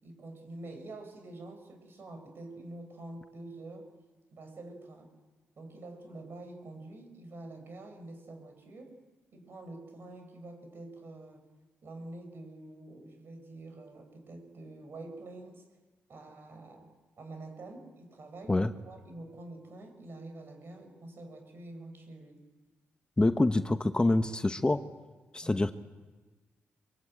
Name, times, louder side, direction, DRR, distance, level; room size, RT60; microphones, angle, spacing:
voice 1, 0.0-3.9 4.3-5.1 5.6-9.0 9.3-11.4 11.8-15.7 16.1-16.9 17.2-22.4 25.4-25.6, right 2 dB, 55° right, 5 dB, 6.3 m, -47 dB
voice 2, 23.2-24.8 25.3-25.7, left 2 dB, 20° left, 9 dB, 1.0 m, -26 dB
24.5 x 23.0 x 8.9 m, 1.3 s
cardioid pair, 70°, 4 cm